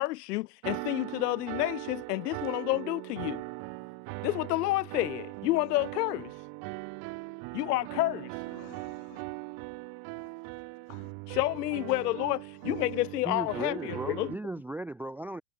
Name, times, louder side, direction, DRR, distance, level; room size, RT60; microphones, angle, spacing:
voice 1, 0.0-3.4 4.2-6.4 7.5-8.4 11.4-12.4 12.6-14.3, left 19 dB, 80° left, 1.2 m, -29 dB
sound 1, 0.6-14.3, right 32 dB, 45° right, 0.9 m, -40 dB
voice 2, 8.4-9.2 10.1-10.5 10.9-11.5 11.9-12.1 12.5-13.0, left 40 dB or more, 55° left, 4.9 m, -54 dB
voice 3, 13.2-15.4, right 2 dB, 5° right, 0.5 m, -37 dB
supercardioid pair, 135°, 47 cm